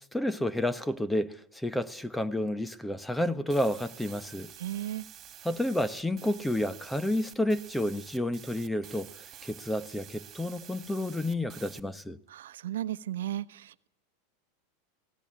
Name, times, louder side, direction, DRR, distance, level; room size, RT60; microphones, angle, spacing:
voice 1, 0.1-4.5 5.4-9.1 9.4-12.2, left 1 dB, 5° left, 1.1 m, -30 dB
sound 1, 3.5-11.8, right 11 dB, 35° right, 2.7 m, -50 dB
voice 2, 4.6-5.0 12.3-13.9, right 12 dB, 80° right, 0.9 m, -35 dB
22.5 x 17.5 x 9.9 m
hypercardioid pair, 110°, 0 cm